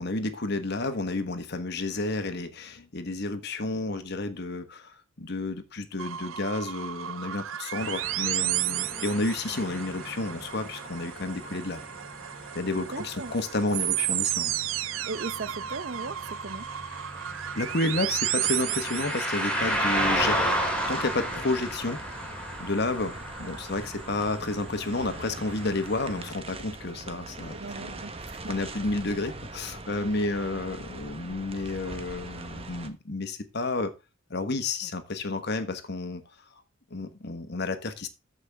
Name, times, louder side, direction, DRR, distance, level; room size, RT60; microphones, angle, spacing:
voice 1, 0.0-11.8 12.5-14.5 17.3-20.5 20.9-22.0 22.3-27.9 28.5-33.9 34.3-36.2 36.9-38.1, left 2 dB, 55° left, 1.3 m, -31 dB
sound 1, 6.0-19.8, right 13 dB, 90° right, 0.5 m, -33 dB
sound 2, 7.8-26.3, equal, 5° left, 3.3 m, -34 dB
voice 2, 12.8-13.3 15.1-16.7 27.5-28.5, right 3 dB, 55° right, 0.8 m, -38 dB
sound 3, 19.6-32.9, right 2 dB, 30° right, 1.1 m, -42 dB
14.0 x 5.4 x 3.5 m
head